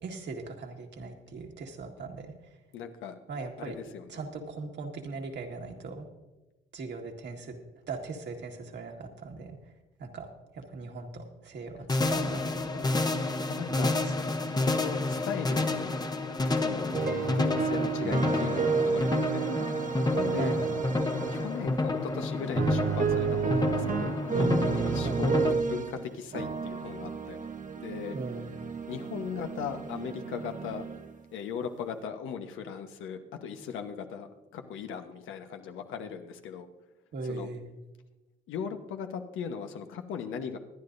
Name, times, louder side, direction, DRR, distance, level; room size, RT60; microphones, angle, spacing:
voice 1, 0.0-2.3 3.3-3.8 4.1-6.1 6.7-7.6 7.9-9.6 10.0-10.3 10.5-12.9 13.7-14.0 20.4-20.7 25.0-25.2 28.1-28.5 37.1-37.6, right 4 dB, 60° right, 2 dB, 1.8 m, -39 dB
voice 2, 2.7-3.2 3.6-4.2 13.5-14.0 14.5-15.9 16.5-19.5 20.3-20.6 21.3-27.4 27.8-28.2 28.9-30.8 31.3-36.7 37.2-37.5 38.5-40.6, left 7 dB, 85° left, 6 dB, 1.1 m, -38 dB
sound 1, 11.9-25.5, left 2 dB, 20° left, 1.0 m, -29 dB
sound 2, 16.9-21.8 22.4-26.0 26.3-31.1, right 6 dB, 40° right, 1.0 m, -31 dB
23.5 x 9.7 x 2.6 m, 1.1 s
cardioid pair, 90°, 20 cm